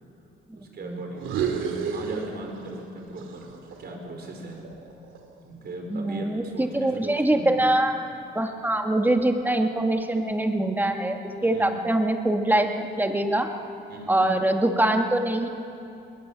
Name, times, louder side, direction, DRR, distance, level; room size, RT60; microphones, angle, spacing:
voice 1, 0.5-3.5 3.8-4.7 5.4-7.7 11.4-11.8 13.9-14.3, right 1 dB, 55° right, 2 dB, 4.7 m, -38 dB
sound 1, 1.1-2.9 3.2-5.4, right 6 dB, 85° right, 2.4 m, -32 dB
voice 2, 5.9-8.0 8.4-13.5 14.1-15.5, right 1 dB, 10° right, 4 dB, 1.9 m, -23 dB
20.5 x 19.0 x 7.6 m, 2.6 s
cardioid pair, 90°, 20 cm